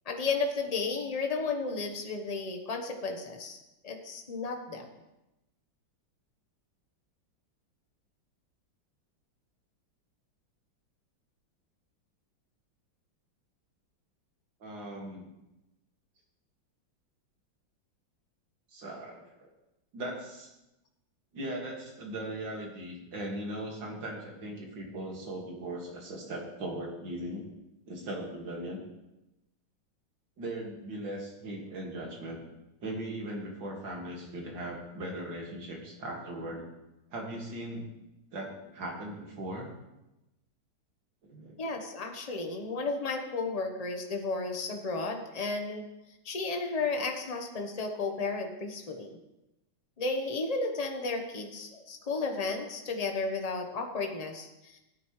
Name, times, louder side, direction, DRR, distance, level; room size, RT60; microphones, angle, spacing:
voice 1, 0.1-3.6 3.8-4.9 41.6-45.8 46.2-49.2 50.0-54.8, left 3 dB, 25° left, 3 dB, 0.9 m, -33 dB
voice 2, 14.6-15.3 18.7-19.5 19.9-20.5 21.3-27.4 27.9-28.8 30.4-32.4 32.8-36.7 37.1-37.9 38.3-39.7 41.2-41.6, right 1 dB, 65° right, 0 dB, 2.7 m, -39 dB
16.5 x 9.4 x 3.2 m, 0.96 s
omnidirectional pair, 2.2 m